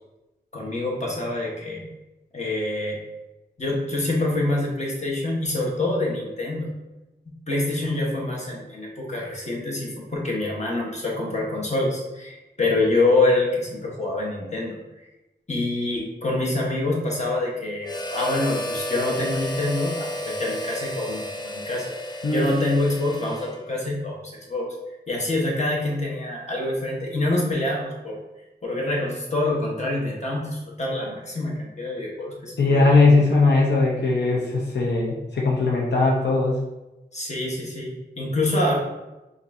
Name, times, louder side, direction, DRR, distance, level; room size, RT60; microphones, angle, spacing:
voice 1, 0.5-1.9 2.3-3.0 3.6-6.7 7.5-14.8 15.5-21.9 22.3-24.7 25.1-28.2 28.6-32.9 37.1-38.7, left 2 dB, 40° left, -3 dB, 1.1 m, -26 dB
Harmonica, 17.8-23.9, left 1 dB, 25° left, 0.4 m, -32 dB
voice 2, 22.2-22.8 32.6-36.6, left 3 dB, 80° left, -4 dB, 0.7 m, -19 dB
5.3 x 2.6 x 2.6 m, 1.0 s
wide cardioid pair, 80°, 18 cm